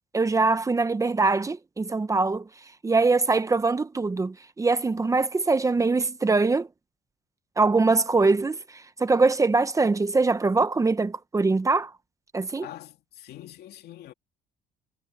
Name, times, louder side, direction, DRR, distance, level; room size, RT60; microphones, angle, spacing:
voice 1, 0.1-2.5 2.8-6.7 7.6-11.9 12.3-12.7, right 3 dB, 20° right, 1.0 m, -23 dB
voice 2, 12.6-14.1, left 13 dB, 70° left, 2.6 m, -44 dB
cardioid pair, 110°, 17 cm